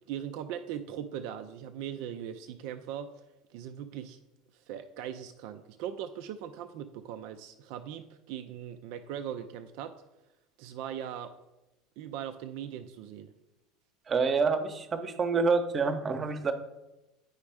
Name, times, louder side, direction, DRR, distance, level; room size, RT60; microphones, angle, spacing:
voice 1, 0.1-3.2 3.5-4.2 4.5-9.9 10.6-11.3 12.0-13.3, right 9 dB, 60° right, 9 dB, 0.4 m, -40 dB
voice 2, 14.1-16.5, right 4 dB, 30° right, 9 dB, 0.9 m, -27 dB
9.4 x 5.1 x 3.4 m, 0.98 s
figure-of-eight pair, 70°, 0 cm